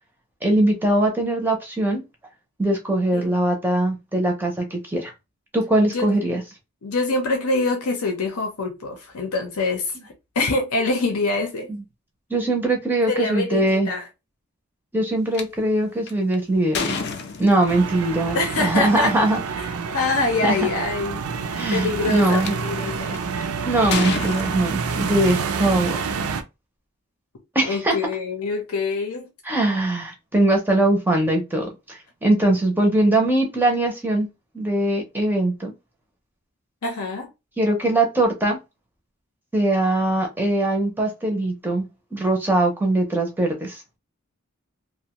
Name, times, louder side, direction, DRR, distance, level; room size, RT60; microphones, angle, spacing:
voice 1, 0.4-2.0 2.6-5.1 5.5-6.4 11.7-11.8 12.3-13.9 14.9-17.0 17.4-19.4 20.4-20.6 21.6-22.5 23.3-26.0 27.5-28.0 29.4-34.3 34.5-35.7 37.6-38.6 39.5-41.9 42.1-43.8, right 1 dB, 10° right, 0.5 m, -21 dB
voice 2, 6.8-11.7 13.1-14.1 18.3-19.2 19.9-21.2 21.7-23.2 27.7-29.3 36.8-37.3, left 3 dB, 85° left, 0.7 m, -25 dB
sound 1, 15.3-15.4 16.1-17.9 19.2-19.4 20.0-20.1 20.3-20.8 21.5-22.5 23.1-23.4 23.9-25.3, left 4 dB, 50° left, 0.4 m, -29 dB
sound 2, 17.7-26.4, right 5 dB, 85° right, 0.4 m, -28 dB
2.5 x 2.1 x 2.9 m
head